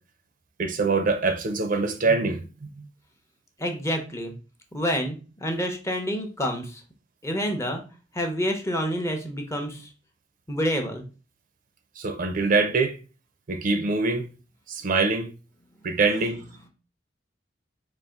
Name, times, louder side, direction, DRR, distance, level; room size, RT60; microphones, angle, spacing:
voice 1, 0.6-2.7 12.0-13.0 13.5-14.3 14.7-15.3 15.8-16.4, right 3 dB, 45° right, 0.5 m, -24 dB
voice 2, 3.6-4.3 4.7-6.8 7.2-7.8 8.1-9.9 10.5-11.0, equal, 15° left, 0.7 m, -28 dB
4.1 x 2.5 x 3.6 m
head